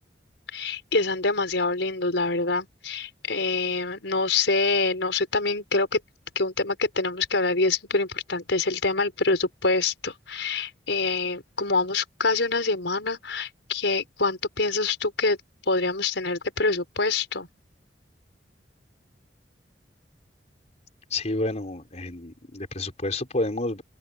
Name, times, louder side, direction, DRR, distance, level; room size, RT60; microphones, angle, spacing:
voice 1, 0.5-6.0 6.4-15.4 15.7-17.5, left 3 dB, 80° left, 5.2 m, -25 dB
voice 2, 21.1-23.8, left 2 dB, 40° left, 4.4 m, -29 dB
open air
head